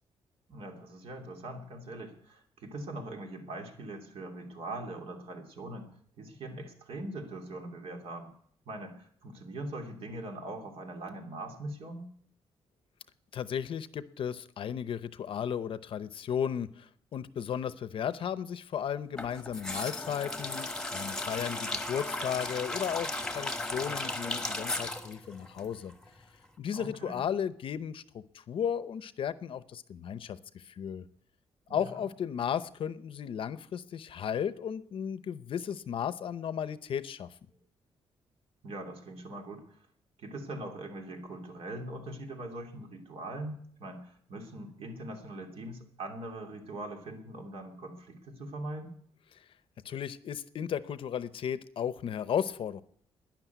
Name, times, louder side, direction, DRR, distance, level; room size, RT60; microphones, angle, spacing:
voice 1, 0.5-5.9 6.2-8.3 8.7-12.1 26.7-27.2 31.7-31.9 38.6-39.8 40.2-49.0, right 1 dB, 65° right, 3 dB, 2.9 m, -42 dB
voice 2, 13.3-25.9 26.6-31.0 31.7-37.3 49.4-49.5 49.8-52.8, left 8 dB, 60° left, 14 dB, 0.7 m, -35 dB
sound 1, 19.2-26.2 26.4-26.5, left 2 dB, 5° left, 1.3 m, -36 dB
12.0 x 10.5 x 9.3 m, 0.64 s
wide cardioid pair, 160°, 11 cm